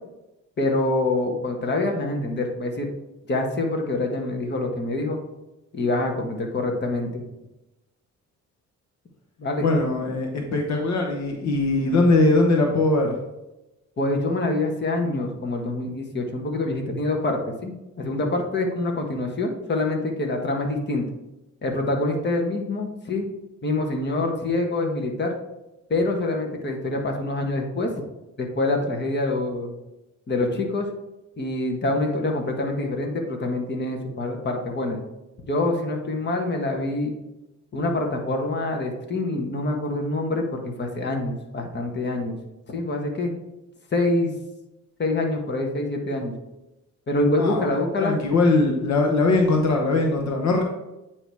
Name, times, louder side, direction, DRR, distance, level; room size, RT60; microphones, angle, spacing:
voice 1, 0.6-2.9 3.3-5.2 5.7-7.2 9.4-9.7 14.0-21.0 21.6-23.3 23.6-25.3 25.9-27.9 28.4-29.7 30.3-30.9 31.4-35.0 35.5-37.1 37.7-42.4 42.7-43.3 43.9-44.3 45.0-46.3 47.1-48.2, left 2 dB, 35° left, 2 dB, 1.3 m, -25 dB
voice 2, 9.6-13.1 47.4-47.6 48.0-50.6, left 2 dB, 65° left, 2 dB, 1.1 m, -21 dB
8.8 x 3.0 x 4.7 m, 0.95 s
cardioid pair, 90°, 30 cm